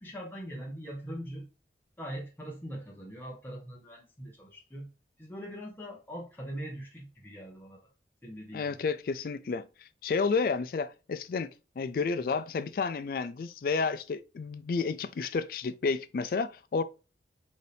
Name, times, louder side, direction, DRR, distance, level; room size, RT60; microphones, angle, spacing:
voice 1, 0.0-1.5 2.0-4.9 5.2-7.8 8.2-8.8, equal, 10° left, 0.7 m, -42 dB
voice 2, 8.5-16.8, left 4 dB, 50° left, 0.3 m, -31 dB
4.1 x 2.7 x 3.3 m
head